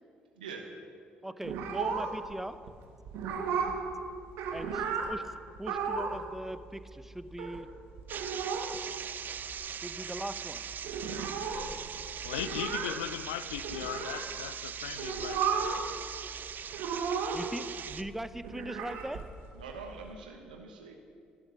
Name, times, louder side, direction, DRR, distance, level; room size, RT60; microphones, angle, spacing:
voice 1, 0.4-0.7 4.7-5.0 11.3-11.8 19.5-20.9, right 4 dB, 80° right, 2 dB, 1.1 m, -46 dB
voice 2, 1.2-2.6 4.5-7.7 9.8-10.6 17.3-19.2, right 1 dB, 5° right, 13 dB, 0.8 m, -40 dB
sound 1, 1.4-2.4 2.7-2.8 3.1-3.9 4.2-5.1 5.6-6.2 6.5-6.6 6.7-7.6 8.0-8.8 9.1-9.2 9.3-10.0 10.3-10.4 10.5-14.3 14.9-15.9 16.1-17.5 17.9-20.1, right 6 dB, 65° right, 1.4 m, -34 dB
sound 2, 8.1-18.0, right 8 dB, 45° right, 0.5 m, -41 dB
voice 3, 12.2-15.7, left 12 dB, 75° left, 13 dB, 0.4 m, -38 dB
13.5 x 12.0 x 6.1 m, 2.2 s
figure-of-eight pair, 45°, 4 cm